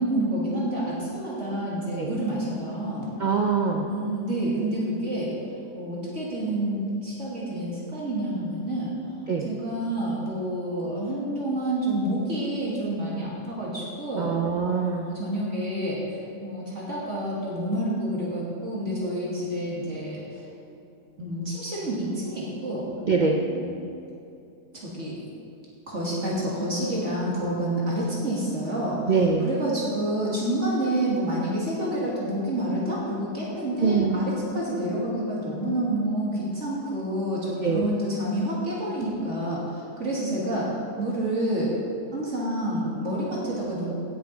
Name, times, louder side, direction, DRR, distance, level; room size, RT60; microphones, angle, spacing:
voice 1, 0.0-3.1 3.7-5.3 5.7-8.9 9.4-14.3 14.8-16.0 16.4-20.4 21.2-22.9 23.4-23.7 24.7-25.2 25.9-41.7 42.1-43.9, right 1 dB, 50° right, -6 dB, 2.1 m, -28 dB
voice 2, 3.2-3.9 9.3-9.5 14.2-15.1 23.1-23.4 29.1-29.5 33.8-34.2 37.6-37.9, right 5 dB, 75° right, 1 dB, 0.4 m, -23 dB
16.0 x 7.1 x 3.9 m, 2.7 s
omnidirectional pair, 1.7 m